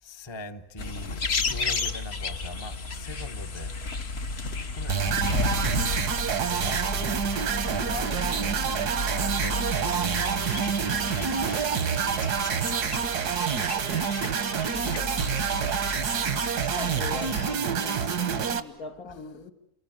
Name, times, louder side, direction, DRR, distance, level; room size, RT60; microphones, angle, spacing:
voice 1, 0.0-3.7 4.7-5.4 6.6-7.2 7.6-8.4 8.7-9.9 10.8-11.8 19.1-19.3, left 2 dB, 20° left, 1.0 m, -42 dB
sound 1, 0.8-17.6, left 3 dB, 45° left, 1.4 m, -33 dB
sound 2, 4.9-18.6, right 7 dB, 85° right, 1.8 m, -27 dB
voice 2, 16.7-17.4 17.7-19.5, left 4 dB, 65° left, 2.4 m, -40 dB
29.0 x 20.5 x 9.0 m
omnidirectional pair, 1.7 m